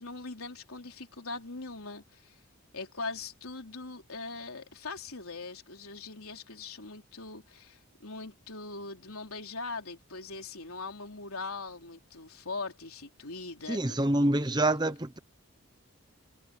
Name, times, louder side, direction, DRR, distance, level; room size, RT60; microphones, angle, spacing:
voice 1, 0.0-2.4 2.7-14.0, left 3 dB, 75° left, 3.6 m, -41 dB
voice 2, 13.7-15.2, right 1 dB, 20° right, 1.0 m, -26 dB
head